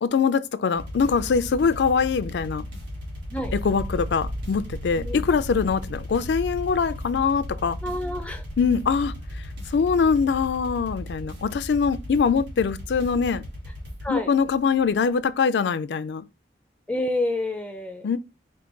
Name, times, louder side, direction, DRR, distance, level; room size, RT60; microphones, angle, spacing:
voice 1, 0.0-2.7 3.6-7.8 8.6-9.1 9.7-13.4 14.1-16.2 18.0-18.2, left 5 dB, 75° left, 0.4 m, -23 dB
sound 1, 0.7-14.1, left 1 dB, 80° right, 1.5 m, -36 dB
sound 2, 3.4-15.3, equal, 45° right, 0.5 m, -41 dB
voice 2, 7.8-8.4 14.0-14.3 16.9-18.1, left 1 dB, 5° left, 0.3 m, -28 dB
4.6 x 2.2 x 3.8 m
head